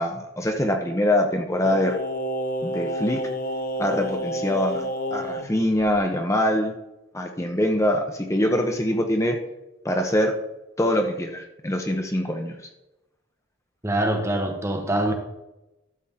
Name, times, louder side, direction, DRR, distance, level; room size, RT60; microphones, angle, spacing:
voice 1, 0.0-2.0 2.6-3.2 3.8-6.7 7.1-9.4 9.8-10.3 10.8-12.6, left 1 dB, 15° left, 0.8 m, -24 dB
Singing, 1.6-5.5 5.8-5.9, equal, 45° left, 0.7 m, -29 dB
voice 2, 13.8-15.1, right 1 dB, 15° right, 0.9 m, -24 dB
13.0 x 7.3 x 3.7 m
head